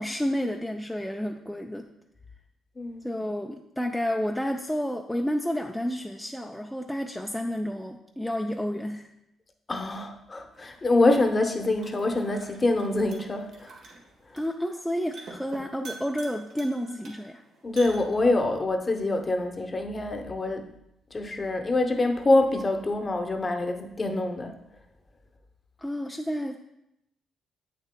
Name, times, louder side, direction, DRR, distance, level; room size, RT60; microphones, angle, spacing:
voice 1, 0.0-1.9 3.0-9.1 14.3-17.4 25.8-26.6, equal, 5° left, 2 dB, 0.4 m, -30 dB
voice 2, 9.7-13.7 17.6-20.7 21.1-24.5, left 2 dB, 30° left, 5 dB, 0.8 m, -25 dB
sound 1, 10.5-18.5, right 3 dB, 70° right, 1.6 m, -48 dB
8.3 x 6.6 x 2.2 m, 0.83 s
cardioid pair, 90°, 0 cm